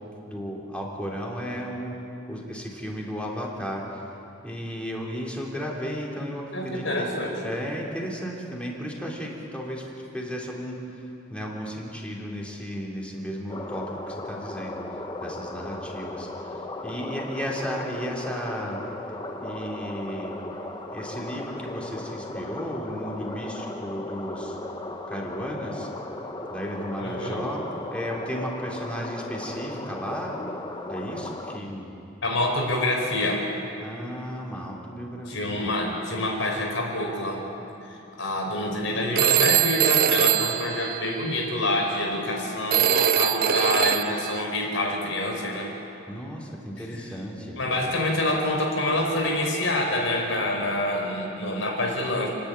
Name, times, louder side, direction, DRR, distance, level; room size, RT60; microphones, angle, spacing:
voice 1, 0.2-2.0 2.3-4.0 4.4-7.1 7.4-10.8 11.3-14.8 15.2-18.8 19.4-20.3 20.9-24.6 25.1-25.9 26.5-27.6 27.9-30.3 30.9-31.9 33.8-35.7 46.1-47.6, equal, 5° left, -2 dB, 3.2 m, -34 dB
voice 2, 6.5-7.5 27.0-27.4 32.2-33.5 35.3-37.4 37.8-45.7 47.5-52.3, left 1 dB, 80° left, 0 dB, 5.0 m, -27 dB
sound 1, 13.5-31.6, left 2 dB, 25° left, 1.2 m, -36 dB
Telephone, 39.2-41.5 42.7-44.4, right 10 dB, 50° right, 0.4 m, -22 dB
29.5 x 10.5 x 9.5 m, 2.8 s
head